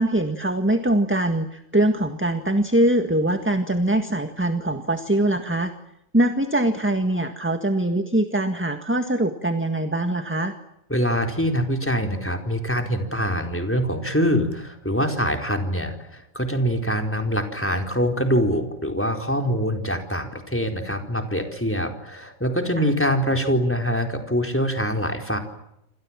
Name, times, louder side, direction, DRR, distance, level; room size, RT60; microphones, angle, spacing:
voice 1, 0.0-5.7 6.1-10.5 22.8-22.9, right 1 dB, 10° right, 7 dB, 1.7 m, -22 dB
voice 2, 10.9-25.4, equal, 10° left, 6 dB, 4.4 m, -24 dB
28.5 x 26.5 x 7.5 m, 0.81 s
omnidirectional pair, 1.4 m